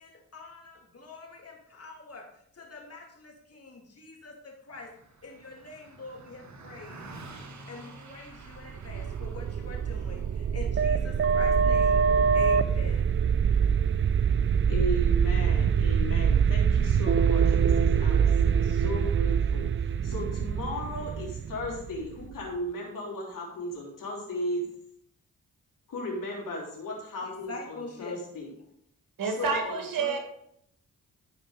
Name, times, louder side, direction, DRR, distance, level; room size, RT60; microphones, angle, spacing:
voice 1, 0.0-2.3 2.5-4.9 5.2-7.1 7.7-13.1 27.2-28.2, left 3 dB, 45° left, 0 dB, 2.7 m, -44 dB
Car passing by, 4.7-14.3, right 2 dB, 55° right, 1.5 m, -50 dB
sound 1, 8.7-22.4, right 7 dB, 35° right, 0.4 m, -24 dB
voice 2, 14.7-24.7 25.9-28.5 29.2-30.1, left 1 dB, 70° left, -2 dB, 3.4 m, -36 dB
voice 3, 29.2-30.2, right 5 dB, 75° right, 3 dB, 2.0 m, -29 dB
12.5 x 5.3 x 4.0 m, 0.73 s
cardioid pair, 55°, 34 cm